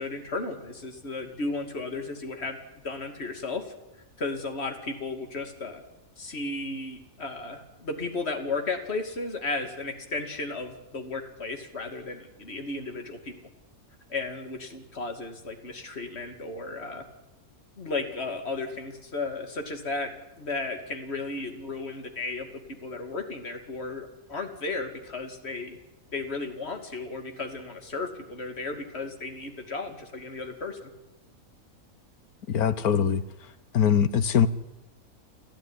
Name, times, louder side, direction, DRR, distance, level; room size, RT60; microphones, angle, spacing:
voice 1, 0.0-2.6 2.8-3.7 4.2-5.8 6.2-13.3 14.1-17.0 17.8-22.5 22.8-25.8 26.1-30.9, left 3 dB, 45° left, 5 dB, 2.7 m, -34 dB
voice 2, 32.5-33.2 33.7-34.5, left 8 dB, 85° left, 13 dB, 1.6 m, -22 dB
29.5 x 13.5 x 9.9 m, 0.97 s
omnidirectional pair, 1.5 m